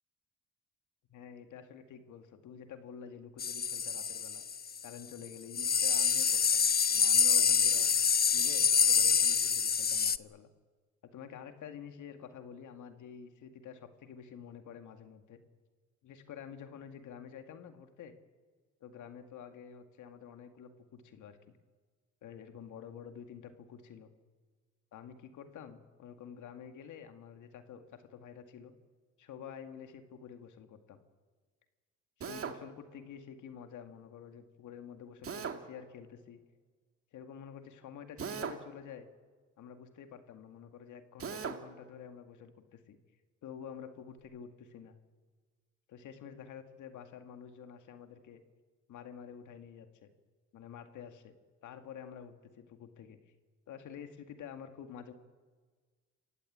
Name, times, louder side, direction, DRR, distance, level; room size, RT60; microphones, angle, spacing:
voice 1, 1.1-4.4 4.8-7.9 8.3-10.5 11.0-15.4 16.0-18.1 18.8-21.6 22.2-24.1 24.9-28.7 29.2-31.0 32.2-36.4 37.1-39.1 39.6-43.0 43.4-45.0 45.9-48.4 48.9-50.1 50.5-51.3 51.6-53.2 53.7-55.1, left 7 dB, 80° left, 7 dB, 2.1 m, -49 dB
sound 1, 3.4-4.8 5.2-5.3 5.5-10.2, left 7 dB, 30° left, 0.7 m, -27 dB
Drill, 32.2-32.6 35.2-35.6 38.2-38.6 41.2-41.6, right 6 dB, 50° right, 2.0 m, -38 dB
28.0 x 15.0 x 8.8 m, 1.5 s
cardioid pair, 90°, 30 cm